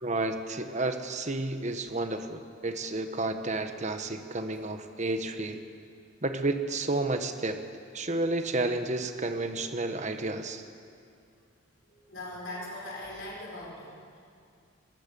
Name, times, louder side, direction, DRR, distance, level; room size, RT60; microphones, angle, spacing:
voice 1, 0.0-5.6 6.2-7.6 7.9-10.6, right 2 dB, 35° right, 8 dB, 1.2 m, -31 dB
voice 2, 12.1-14.2, left 1 dB, 60° left, -4 dB, 5.7 m, -40 dB
22.5 x 18.0 x 6.9 m, 2.3 s
head